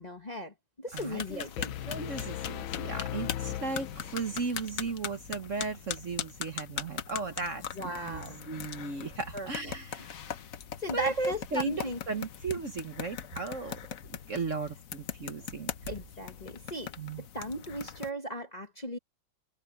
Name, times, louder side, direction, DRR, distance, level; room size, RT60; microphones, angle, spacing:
voice 1, 0.0-1.7 7.7-8.4 9.3-9.5 10.8-12.0 15.9-19.0, right 1 dB, 25° left, 1.3 m, -36 dB
sound 1, 0.9-18.1, left 9 dB, 55° left, 1.0 m, -41 dB
voice 2, 0.9-1.4 1.9-10.2 10.9-13.8 14.1-15.7 17.0-17.2, right 3 dB, 45° right, 1.4 m, -36 dB
sound 2, 1.6-4.5, left 12 dB, 80° left, 1.5 m, -38 dB
omnidirectional pair, 2.2 m